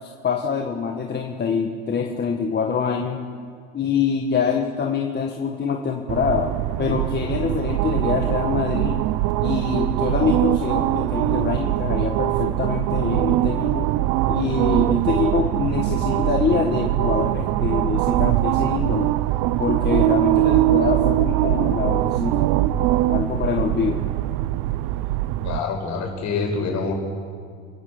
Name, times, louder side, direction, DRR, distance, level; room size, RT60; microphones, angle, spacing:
voice 1, 0.0-3.2 3.7-6.5 6.8-9.0 9.4-13.9 14.3-19.1 19.6-22.5 22.7-24.0, left 6 dB, 25° left, 1 dB, 1.7 m, -25 dB
sound 1, 6.1-25.6, right 16 dB, 55° right, 0.6 m, -22 dB
voice 2, 25.4-26.9, left 4 dB, 45° left, 1 dB, 6.3 m, -26 dB
28.5 x 16.0 x 6.7 m, 2.1 s
supercardioid pair, 115°, 39 cm